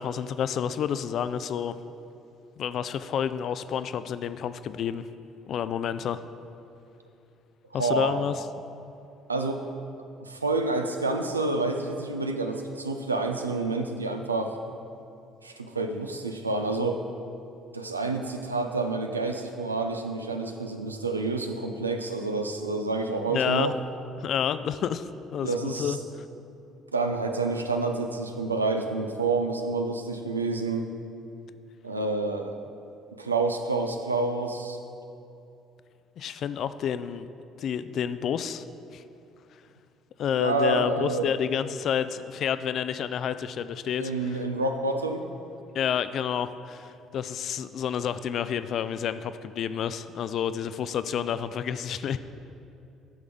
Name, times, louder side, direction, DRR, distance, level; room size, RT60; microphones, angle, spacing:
voice 1, 0.0-1.7 2.6-5.1 5.5-6.2 7.7-8.3 23.3-23.7 24.2-26.0 36.2-37.3 37.6-38.6 38.9-39.0 40.2-44.4 45.7-52.2, left 8 dB, 55° left, 13 dB, 0.3 m, -29 dB
voice 2, 7.7-8.2 9.3-9.6 10.2-14.6 15.4-17.0 17.7-23.8 25.4-26.0 26.9-30.9 31.8-32.6 33.2-34.8 40.4-41.3 44.0-45.3, right 3 dB, 90° right, 5 dB, 0.4 m, -28 dB
10.5 x 6.0 x 3.9 m, 2.7 s
figure-of-eight pair, 50°, 0 cm